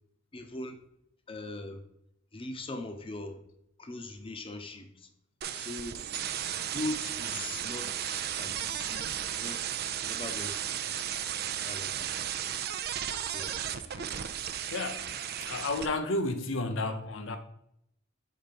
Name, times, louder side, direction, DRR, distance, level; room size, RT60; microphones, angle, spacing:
voice 1, 0.3-0.8 1.3-1.8 2.3-3.4 3.8-5.1 5.5-6.0 6.7-9.6 9.9-11.1 11.6-12.2 13.1-14.1, left 2 dB, 30° left, 0.8 m, -41 dB
sound 1, 5.4-15.9, right 10 dB, 55° right, 0.5 m, -35 dB
voice 2, 14.7-17.4, left 2 dB, 90° left, 0.8 m, -32 dB
6.0 x 4.2 x 5.2 m
head